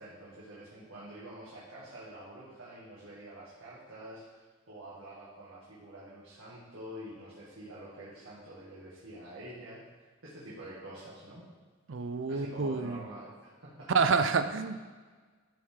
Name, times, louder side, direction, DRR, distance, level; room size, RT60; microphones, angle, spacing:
voice 1, 0.0-4.4 4.7-9.8 10.2-11.4 12.3-13.9, right 1 dB, 90° right, -8 dB, 1.9 m, -47 dB
voice 2, 11.9-13.0 13.9-14.8, right 4 dB, 65° right, 10 dB, 0.5 m, -28 dB
12.5 x 4.7 x 3.7 m, 1.4 s
head